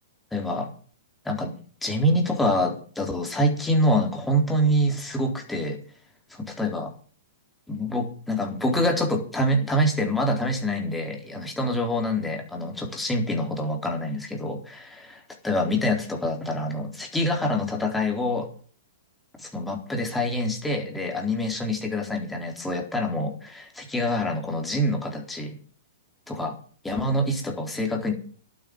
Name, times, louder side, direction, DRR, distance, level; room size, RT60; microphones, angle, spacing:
voice 1, 0.3-0.7 1.3-1.5 1.8-5.8 6.6-6.9 7.7-18.5 19.4-25.6 26.3-26.5 26.8-28.1, equal, 5° left, 2 dB, 3.9 m, -26 dB
11.5 x 9.7 x 8.8 m, 0.43 s
hypercardioid pair, 125°, 0 cm